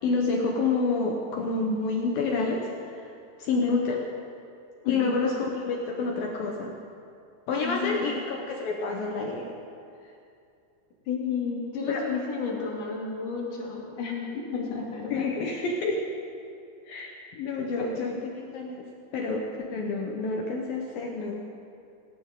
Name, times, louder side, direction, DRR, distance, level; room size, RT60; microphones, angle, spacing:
voice 1, 0.0-3.1 3.4-4.1 4.9-6.8 7.5-9.6 11.9-12.1 15.1-16.0 16.9-18.9 19.1-21.4, left 3 dB, 75° left, 0 dB, 2.2 m, -28 dB
voice 2, 4.8-5.2 7.6-8.1 11.1-15.6 17.8-18.3, left 5 dB, 45° left, -3 dB, 3.6 m, -32 dB
18.5 x 18.0 x 3.8 m, 2.4 s
omnidirectional pair, 5.5 m